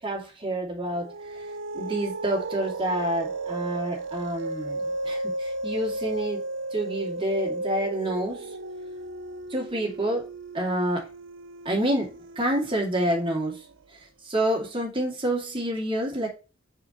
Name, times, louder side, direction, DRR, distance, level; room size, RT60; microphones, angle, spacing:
voice 1, 0.0-1.4 1.7-6.4 6.7-8.5 9.5-10.3 10.5-11.1 11.6-13.6 13.9-14.0 14.2-16.3, right 1 dB, 25° right, -1 dB, 2.4 m, -28 dB
sound 1, 0.9-13.7, right 2 dB, 65° right, 0.6 m, -34 dB
4.9 x 4.6 x 4.2 m, 0.31 s
head